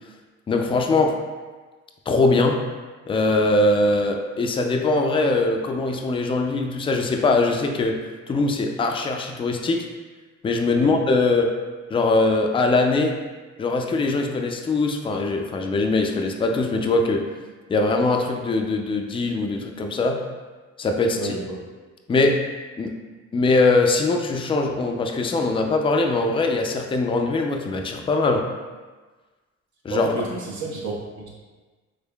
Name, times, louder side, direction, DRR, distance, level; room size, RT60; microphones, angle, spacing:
voice 1, 0.5-1.2 2.1-2.6 3.1-8.0 8.3-9.9 10.4-11.5 11.9-13.1 13.6-17.2 17.7-20.2 20.8-21.3 22.1-22.4 22.8-22.9 23.3-28.4 29.8-30.1, left 3 dB, 20° left, 3 dB, 0.3 m, -21 dB
voice 2, 21.1-21.6 29.9-31.3, right 3 dB, 70° right, -4 dB, 0.8 m, -30 dB
3.6 x 3.3 x 2.3 m, 1.3 s
cardioid pair, 90°, 30 cm